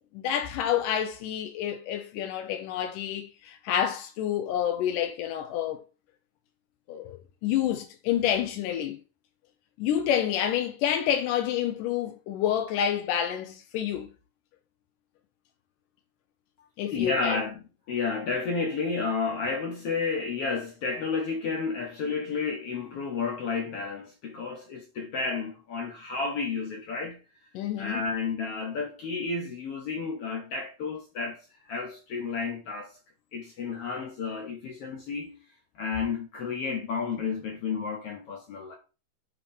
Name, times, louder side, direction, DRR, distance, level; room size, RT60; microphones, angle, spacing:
voice 1, 0.1-5.8 6.9-9.0 9.8-14.1 16.8-17.4 27.6-28.0, left 10 dB, 85° left, 2.4 m, -28 dB
voice 2, 16.9-27.2 27.8-31.4 31.6-33.0 33.3-35.4 35.7-38.8, left 4 dB, 65° left, 1.6 m, -31 dB
9.0 x 3.1 x 4.2 m
omnidirectional pair, 3.7 m